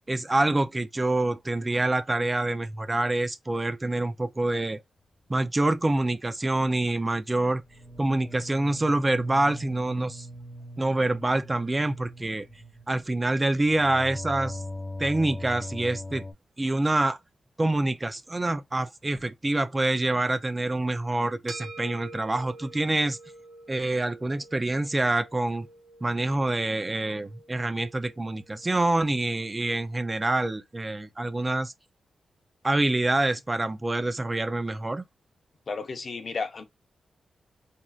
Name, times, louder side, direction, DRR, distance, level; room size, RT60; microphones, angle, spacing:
voice 1, 0.1-4.8 5.3-7.6 8.0-10.3 10.8-12.5 12.9-14.6 15.0-16.2 16.6-17.2 17.6-23.2 23.7-25.7 26.0-31.7 32.6-35.0, right 2 dB, 25° right, 0.4 m, -26 dB
sound 1, 7.6-16.3, left 1 dB, 20° left, 1.0 m, -40 dB
sound 2, 21.5-30.1, right 2 dB, 65° right, 1.1 m, -48 dB
voice 2, 35.7-36.6, left 4 dB, 60° left, 0.6 m, -33 dB
3.0 x 2.5 x 2.3 m
cardioid pair, 65°, 0 cm